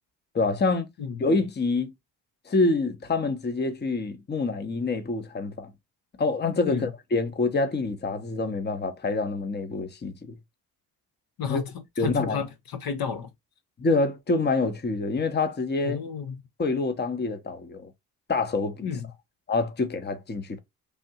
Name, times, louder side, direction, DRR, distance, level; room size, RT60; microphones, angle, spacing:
voice 1, 0.3-0.9 1.2-1.9 2.5-5.7 6.2-10.4 11.5-11.6 12.0-12.4 13.8-16.0 16.6-17.9 18.3-18.9 19.5-20.6, left 3 dB, 25° left, 0.8 m, -26 dB
voice 2, 11.4-13.3 15.8-16.4 18.8-19.1, left 6 dB, 50° left, 0.8 m, -32 dB
3.5 x 2.6 x 2.7 m
hypercardioid pair, 50°, 45 cm